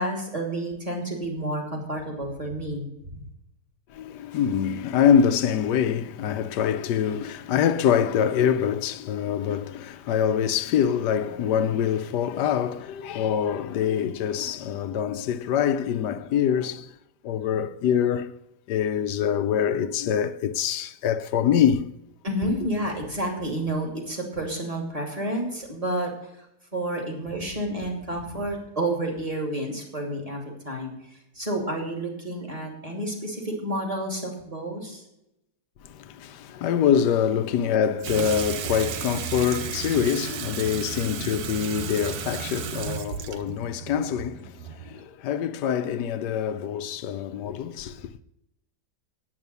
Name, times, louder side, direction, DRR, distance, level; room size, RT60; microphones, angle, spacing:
voice 1, 0.0-3.2 22.2-26.3 26.7-35.0, right 1 dB, 20° right, 2.8 m, -30 dB
voice 2, 3.9-16.9 17.2-18.3 18.7-21.9 35.8-48.1, left 8 dB, 80° left, 1.3 m, -25 dB
Water tap faucet / Sink (filling or washing), 38.0-45.0, right 9 dB, 70° right, 1.2 m, -34 dB
9.7 x 8.7 x 6.8 m
omnidirectional pair, 1.8 m